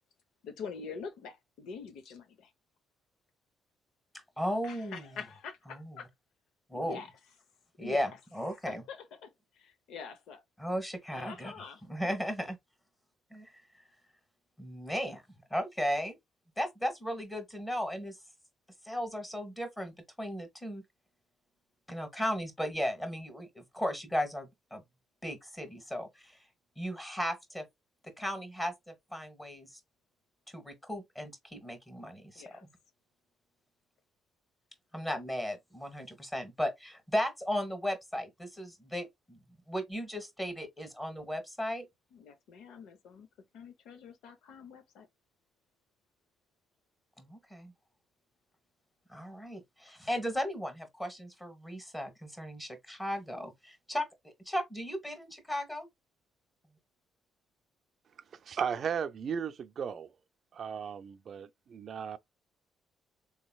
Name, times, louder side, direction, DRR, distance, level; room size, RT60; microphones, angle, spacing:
voice 1, 0.4-2.5 4.6-6.1 6.7-7.1 7.8-8.0 8.7-10.4 11.1-11.9 32.3-32.7 42.1-43.3 43.5-45.1, left 6 dB, 85° left, 0.7 m, -45 dB
voice 2, 4.4-5.1 5.7-6.0 6.7-7.0 7.8-8.1 8.3-8.8 10.6-12.6 13.3-13.8 14.6-15.2 15.5-16.2 16.6-18.2 18.8-20.8 21.9-24.8 25.2-26.4 26.8-27.6 28.0-29.8 30.5-32.7 34.9-39.4 39.7-41.9 47.2-47.7 49.1-55.9, equal, 10° left, 1.3 m, -36 dB
voice 3, 58.4-60.1 60.5-62.2, right 7 dB, 55° right, 0.4 m, -35 dB
3.8 x 3.0 x 2.2 m
cardioid pair, 90°, 0 cm